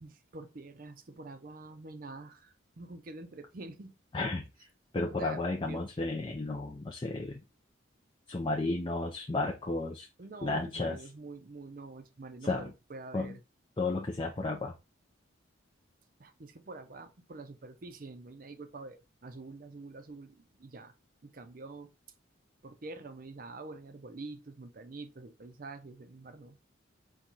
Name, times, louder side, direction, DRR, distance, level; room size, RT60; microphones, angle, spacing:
voice 1, 0.0-4.0 5.1-5.8 10.2-13.4 16.2-20.9 21.2-21.9 22.6-26.6, right 3 dB, 45° right, 0.5 m, -46 dB
voice 2, 4.1-4.5 4.9-7.4 8.3-10.1 10.4-11.0 12.5-12.7 13.1-13.3 13.8-14.7, left 2 dB, 25° left, 0.4 m, -33 dB
4.5 x 2.3 x 3.8 m
head